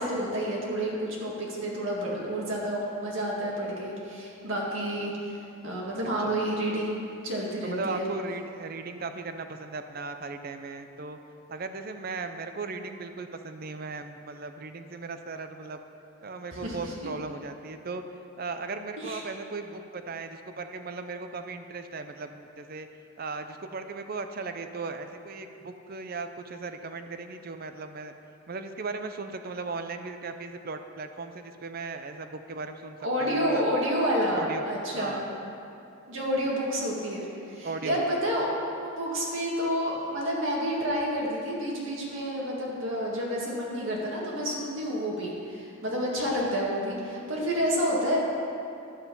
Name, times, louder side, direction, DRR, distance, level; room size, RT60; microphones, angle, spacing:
voice 1, 0.0-5.1 5.6-8.1 16.5-16.9 19.0-19.2 33.0-35.2 36.1-38.5 38.8-48.2, equal, 65° right, -4 dB, 2.0 m, -29 dB
voice 2, 7.6-11.2 11.5-15.8 16.2-18.0 18.4-22.9 23.2-28.1 28.5-33.7 34.3-34.7 34.9-35.2 37.6-38.0, right 3 dB, 45° right, 8 dB, 0.6 m, -37 dB
11.0 x 8.3 x 5.4 m, 2.7 s
head